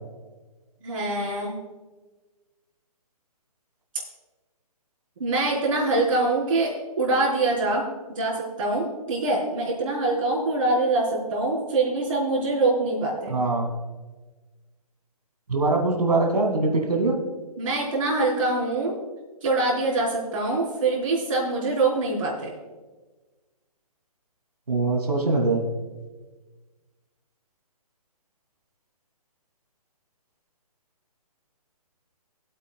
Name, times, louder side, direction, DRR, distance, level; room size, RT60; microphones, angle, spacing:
voice 1, 0.8-1.5 5.2-6.7 7.0-7.8 8.1-13.3 17.6-18.9 19.4-22.5, right 2 dB, 55° right, -5 dB, 3.9 m, -24 dB
voice 2, 13.3-13.7 15.5-17.2 24.7-25.6, right 3 dB, 80° right, 2 dB, 2.2 m, -22 dB
20.5 x 8.3 x 2.3 m, 1.3 s
figure-of-eight pair, 140°, 20 cm